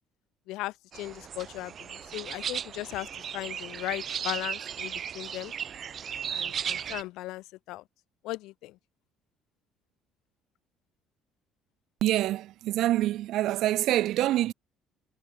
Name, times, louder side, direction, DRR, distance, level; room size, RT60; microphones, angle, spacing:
voice 1, 0.5-3.1 3.3-5.5 6.3-7.8 8.2-8.8, left 18 dB, 70° left, 2.4 m, -37 dB
sound 1, 0.9-7.0, right 8 dB, 30° right, 3.4 m, -36 dB
voice 2, 12.0-14.5, right 14 dB, 55° right, 2.2 m, -26 dB
cardioid pair, 175°, 0 cm